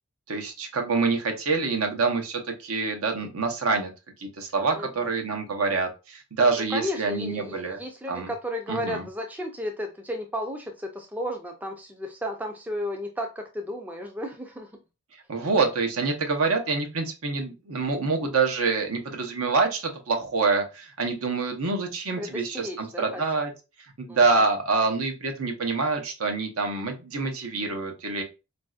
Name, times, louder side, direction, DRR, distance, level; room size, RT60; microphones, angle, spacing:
voice 1, 0.3-3.9 4.2-7.8 8.1-8.3 8.7-9.0 15.3-23.5 24.0-28.2, right 4 dB, 75° right, 4 dB, 0.8 m, -26 dB
voice 2, 4.7-5.1 6.7-14.7 22.2-23.4 24.1-24.5, left 1 dB, 5° right, 3 dB, 0.3 m, -34 dB
4.1 x 2.5 x 2.3 m, 0.28 s
head